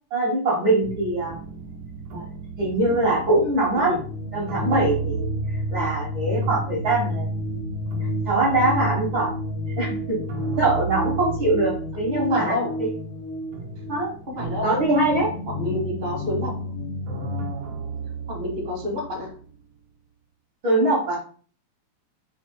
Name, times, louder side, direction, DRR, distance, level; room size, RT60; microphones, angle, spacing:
voice 1, 0.1-1.4 2.1-2.3 2.6-3.9 4.3-7.3 8.2-9.3 9.8-10.2 10.6-12.9 13.9-14.1 14.6-15.3 20.6-21.2, right 2 dB, 70° right, -4 dB, 1.1 m, -22 dB
sound 1, 0.8-12.8 13.2-19.6, right 6 dB, 90° right, 1.3 m, -36 dB
sound 2, 2.6-17.6, left 1 dB, 85° left, 2.2 m, -31 dB
voice 2, 12.1-12.8 14.3-14.8 15.5-16.7 18.3-19.3, left 2 dB, 55° right, -2 dB, 0.5 m, -29 dB
4.9 x 2.8 x 3.6 m, 0.44 s
omnidirectional pair, 3.8 m